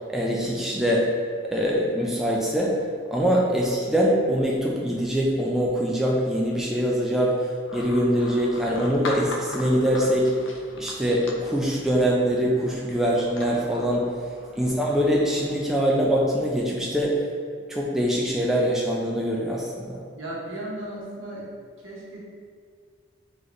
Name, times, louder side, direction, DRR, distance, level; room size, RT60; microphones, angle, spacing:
voice 1, 0.1-1.1 1.5-7.5 7.7-10.3 10.8-14.1 14.6-17.2 17.7-20.0, equal, ahead, -4 dB, 0.4 m, -23 dB
sound 1, 7.7-15.6, left 2 dB, 75° left, 0.5 m, -40 dB
voice 2, 20.1-21.5 21.8-22.2, right 1 dB, 80° right, -5 dB, 1.2 m, -36 dB
4.0 x 3.3 x 3.8 m, 2.1 s
head